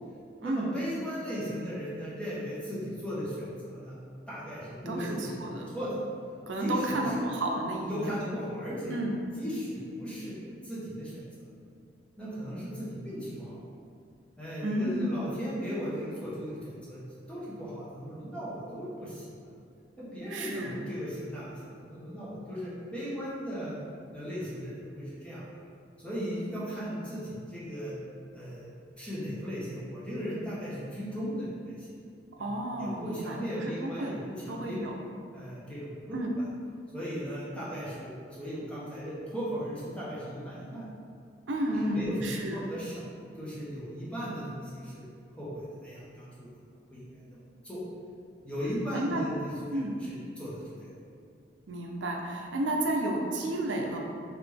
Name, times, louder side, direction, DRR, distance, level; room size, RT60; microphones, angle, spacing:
voice 1, 0.4-3.9 4.3-6.0 6.6-7.0 7.9-9.0 9.4-10.4 10.6-11.5 12.2-13.6 14.4-17.0 17.3-19.2 20.0-23.8 24.1-25.4 26.0-27.9 28.3-28.7 29.0-31.9 32.4-32.5 32.8-34.8 35.3-36.2 36.9-40.8 41.7-43.0 43.3-45.1 45.4-46.5 46.9-47.8 48.4-50.9, equal, 5° left, -9 dB, 1.0 m, -37 dB
voice 2, 4.9-5.6 6.5-8.1 8.9-9.2 14.6-15.2 20.3-20.9 32.4-34.1 34.5-34.9 36.1-36.3 41.5-42.7 48.9-49.2 49.7-49.9 51.7-54.0, right 1 dB, 75° right, 1 dB, 0.6 m, -32 dB
4.0 x 3.1 x 3.4 m, 2.4 s
head